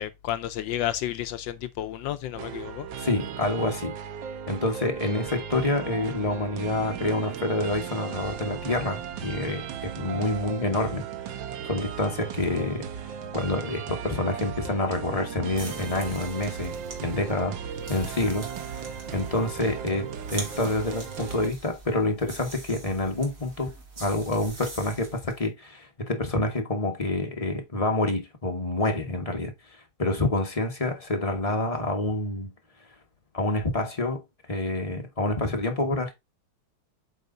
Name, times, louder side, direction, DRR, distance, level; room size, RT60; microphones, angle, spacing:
voice 1, 0.0-2.9, left 12 dB, 75° left, 1.2 m, -31 dB
sound 1, 2.3-21.5, right 8 dB, 70° right, 1.4 m, -37 dB
voice 2, 3.0-3.9 4.5-11.1 11.6-12.9 13.3-16.7 17.0-17.6 17.9-18.8 19.1-23.7 24.0-29.5 30.0-32.5 33.3-34.2 34.5-36.1, left 2 dB, 20° left, 1.2 m, -27 dB
sound 2, 15.5-25.4, right 3 dB, 40° right, 2.5 m, -43 dB
8.2 x 4.0 x 3.8 m
omnidirectional pair, 2.2 m